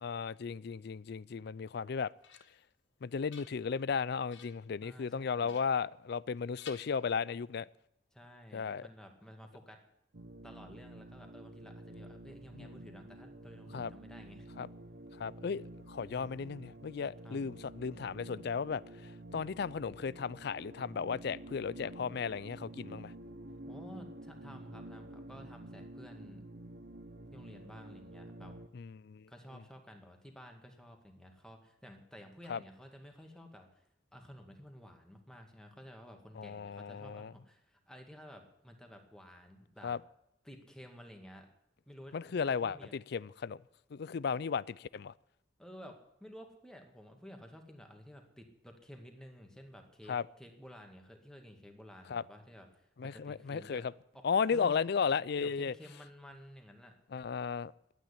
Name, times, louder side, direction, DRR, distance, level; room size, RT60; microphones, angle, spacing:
voice 1, 0.0-2.1 3.0-7.7 8.5-8.8 12.5-12.7 13.7-13.9 14.6-14.7 15.2-18.8 19.3-23.1 28.7-29.3 32.5-32.6 36.4-37.3 39.8-40.0 42.1-43.6 43.9-45.1 50.1-50.2 52.1-52.2 53.0-53.9 54.2-55.7 57.1-57.7, left 6 dB, 65° left, 0.4 m, -35 dB
sound 1, 1.9-2.7 3.1-3.9 4.3-4.7 5.5-6.3 6.6-7.5, left 7 dB, 90° left, 1.6 m, -56 dB
voice 2, 4.8-5.6 8.1-9.8 10.4-14.5 17.2-17.4 23.6-26.4 27.3-28.6 29.3-33.8 34.1-40.0 40.4-41.5 41.9-42.9 45.6-53.8 54.1-54.8 55.4-56.9, equal, 5° left, 2.0 m, -53 dB
sound 2, 10.1-28.7, right 1 dB, 65° right, 1.0 m, -50 dB
11.5 x 9.4 x 9.9 m
head